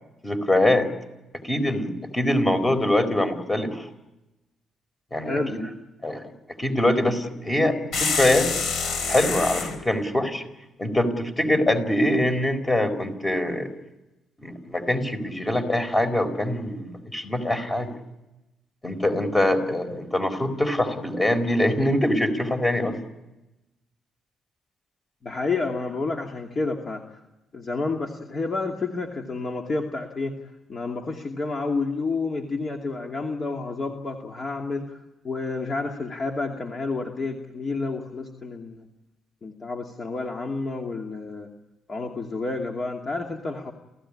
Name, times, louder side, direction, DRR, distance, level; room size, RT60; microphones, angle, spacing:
voice 1, 0.2-0.9 1.4-3.9 5.1-5.6 6.0-6.2 6.6-8.5 9.1-10.4 10.8-13.7 14.4-17.9 18.8-23.0, left 1 dB, 15° left, 9 dB, 4.3 m, -23 dB
voice 2, 5.2-5.6 25.2-27.0 27.5-30.4 30.7-38.8 39.4-41.5 41.9-43.7, left 3 dB, 35° left, 2 dB, 2.5 m, -30 dB
sound 1, 7.9-9.8, left 5 dB, 70° left, 4.3 m, -26 dB
28.5 x 15.5 x 10.0 m, 0.97 s
cardioid pair, 90°, 0 cm